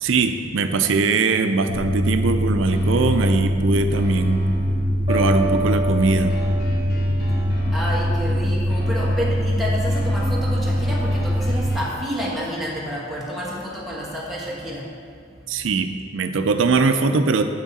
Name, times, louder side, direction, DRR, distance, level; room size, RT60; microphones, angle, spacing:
voice 1, 0.0-4.5 5.1-6.4 15.5-17.4, right 4 dB, 70° right, 8 dB, 0.5 m, -21 dB
sound 1, 1.7-11.7, equal, 85° left, 1.0 m, -22 dB
sound 2, 2.7-3.5 3.9-4.7 5.1-8.3 8.7-9.5 9.9-12.1, equal, 50° left, 1.2 m, -39 dB
sound 3, 5.1-7.9, right 2 dB, 30° right, 1.1 m, -29 dB
voice 2, 7.7-14.9, equal, ahead, -7 dB, 1.5 m, -29 dB
8.2 x 6.1 x 4.1 m, 2.2 s
head